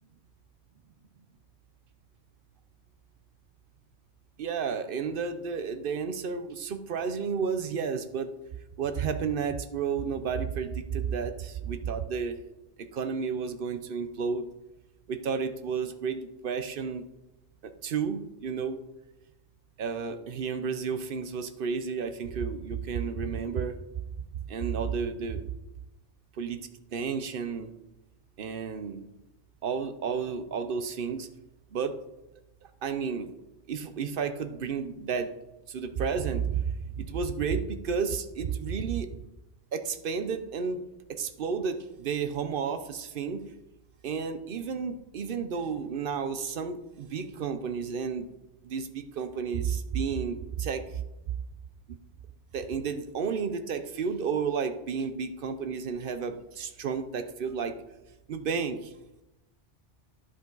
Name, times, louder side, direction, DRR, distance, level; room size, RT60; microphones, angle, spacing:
voice 1, 4.4-8.3 8.8-12.4 12.9-14.5 15.1-17.0 17.8-18.8 19.8-23.8 24.5-25.4 26.4-26.6 26.9-27.7 28.4-29.0 29.6-31.3 31.7-31.9 32.8-33.3 33.7-35.3 35.7-36.6 37.0-39.1 39.7-40.8 41.2-43.4 44.0-48.3 48.6-51.0 51.9-52.0 52.5-57.7 58.3-58.8, right 6 dB, 55° right, 10 dB, 0.8 m, -31 dB
11.0 x 5.0 x 3.9 m, 0.97 s
omnidirectional pair, 1.2 m